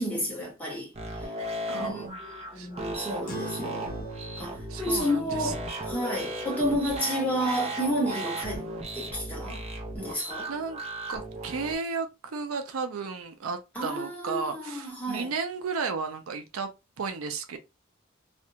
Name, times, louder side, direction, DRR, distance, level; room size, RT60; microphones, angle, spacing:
voice 1, 0.0-1.3 1.8-3.9 4.4-9.6 10.0-10.5 13.7-15.3, equal, 5° left, 1.2 m, -31 dB
sound 1, 0.9-11.7, right 1 dB, 30° right, 0.6 m, -36 dB
voice 2, 1.7-2.7 4.7-5.8 9.5-9.6 10.5-10.8 11.1-16.7 17.0-17.6, right 4 dB, 85° right, 0.5 m, -34 dB
sound 2, 3.3-8.1, right 2 dB, 45° left, 0.9 m, -44 dB
2.4 x 2.2 x 2.7 m
head